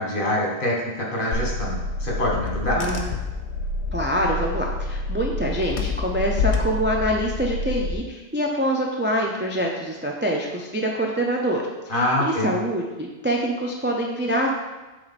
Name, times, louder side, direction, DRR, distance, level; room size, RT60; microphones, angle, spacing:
voice 1, 0.0-2.8 11.9-12.5, left 1 dB, 55° left, -3 dB, 1.5 m, -25 dB
Car / Engine, 1.3-7.9, left 3 dB, 75° left, 1.0 m, -27 dB
voice 2, 2.8-3.2 3.9-14.5, equal, 15° right, -1 dB, 0.4 m, -25 dB
7.6 x 3.2 x 4.2 m, 1.2 s
omnidirectional pair, 1.1 m